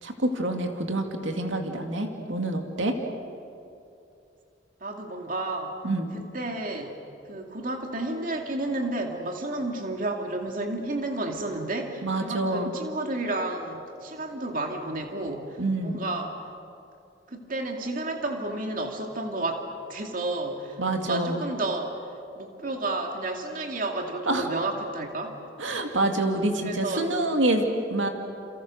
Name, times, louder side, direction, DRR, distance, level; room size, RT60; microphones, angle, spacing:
voice 1, 0.0-2.9 5.8-6.1 12.0-12.7 15.6-16.0 20.8-21.4 24.3-24.5 25.6-28.1, right 2 dB, 85° right, 3 dB, 2.4 m, -27 dB
voice 2, 4.8-5.8 6.1-7.0 7.3-16.4 17.3-19.6 19.9-22.0 22.4-25.4 26.6-27.1, right 2 dB, 45° right, 2 dB, 2.5 m, -31 dB
29.0 x 29.0 x 6.6 m, 2.6 s
head